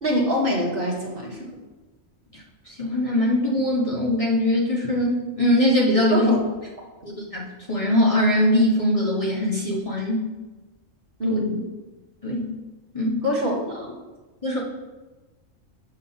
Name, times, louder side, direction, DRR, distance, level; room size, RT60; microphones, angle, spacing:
voice 1, 0.0-1.5 6.1-6.4 11.2-11.6 13.2-13.9, equal, 45° right, -2 dB, 1.5 m, -25 dB
voice 2, 2.7-6.3 7.3-10.2 11.2-11.4 12.2-12.5 12.9-13.2 14.4-14.6, left 1 dB, 25° left, -4 dB, 1.4 m, -21 dB
11.5 x 6.3 x 2.9 m, 1.2 s
omnidirectional pair, 1.4 m